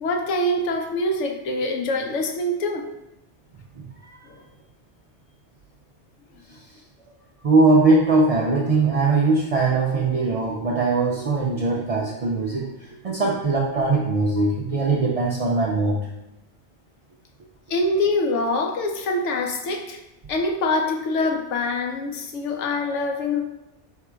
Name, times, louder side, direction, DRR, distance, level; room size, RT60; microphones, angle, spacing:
voice 1, 0.0-2.9 4.3-4.4 17.7-20.0 20.3-23.4, left 2 dB, 90° left, 3 dB, 1.0 m, -24 dB
voice 2, 3.8-4.2 6.5-6.6 7.4-16.0, right 3 dB, 65° right, -3 dB, 0.3 m, -21 dB
3.7 x 2.3 x 4.4 m, 0.92 s
omnidirectional pair, 1.2 m